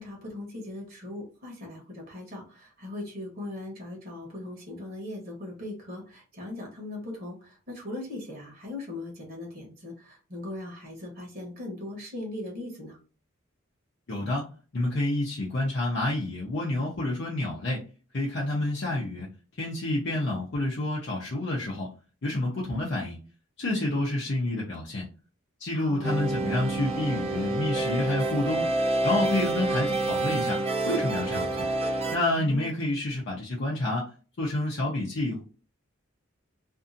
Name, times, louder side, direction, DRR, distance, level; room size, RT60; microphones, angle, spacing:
voice 1, 0.0-13.0 25.7-26.0 32.3-32.7, left 2 dB, 45° right, -1 dB, 1.0 m, -39 dB
voice 2, 14.1-14.5 14.7-17.8 18.1-19.3 19.6-21.9 22.2-23.2 23.6-25.0 25.6-28.7 29.0-31.6 32.1-34.1 34.4-35.4, left 1 dB, 55° left, -4 dB, 0.6 m, -29 dB
sound 1, 26.0-32.2, right 2 dB, 30° right, 0.5 m, -28 dB
2.6 x 2.5 x 2.5 m, 0.36 s
head